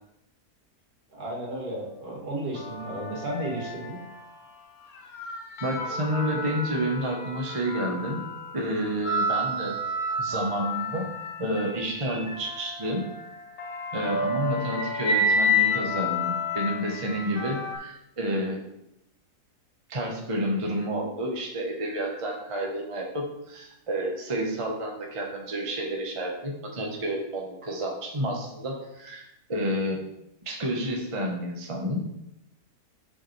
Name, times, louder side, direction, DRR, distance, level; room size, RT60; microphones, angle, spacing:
voice 1, 1.1-4.0, right 1 dB, 70° right, -3 dB, 2.6 m, -33 dB
sound 1, 2.5-4.4 4.9-17.8, left 2 dB, 65° left, 1.4 m, -30 dB
voice 2, 5.6-8.2 8.5-9.7 10.2-11.0 11.4-13.1 13.9-18.6 19.9-29.2 29.5-30.0 30.4-32.0, right 1 dB, 25° right, 0 dB, 1.0 m, -30 dB
7.5 x 6.7 x 3.3 m, 0.81 s
omnidirectional pair, 1.7 m